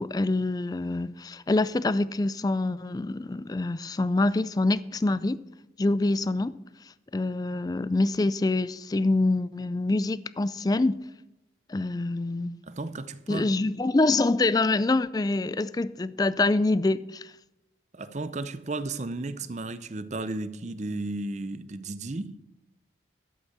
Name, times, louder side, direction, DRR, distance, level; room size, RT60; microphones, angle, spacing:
voice 1, 0.0-5.4 5.8-6.5 7.1-11.0 11.7-12.6 13.3-17.3, left 2 dB, 20° left, 0.3 m, -25 dB
voice 2, 12.7-13.5 17.9-22.4, right 2 dB, 40° right, 0.6 m, -34 dB
11.5 x 8.2 x 6.0 m
head